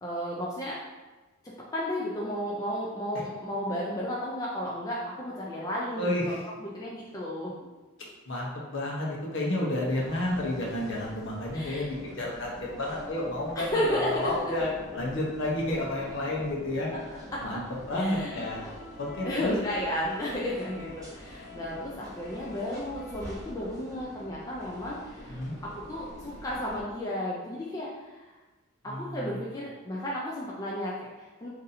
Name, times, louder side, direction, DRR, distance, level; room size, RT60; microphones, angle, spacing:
voice 1, 0.0-0.8 1.7-7.5 11.5-11.9 13.6-14.3 16.9-17.0 17.3-17.6 17.9-18.5 19.2-25.4 25.6-28.2 28.8-31.5, left 1 dB, 15° left, -5 dB, 0.3 m, -33 dB
voice 2, 5.9-6.4 8.3-16.9 17.4-17.6 17.9-18.7 19.0-19.6 25.3-25.5 28.8-29.4, left 1 dB, 60° left, -3 dB, 0.8 m, -31 dB
sound 1, 9.9-26.8, equal, 15° right, 0.7 m, -46 dB
2.6 x 2.6 x 4.0 m, 1.2 s
head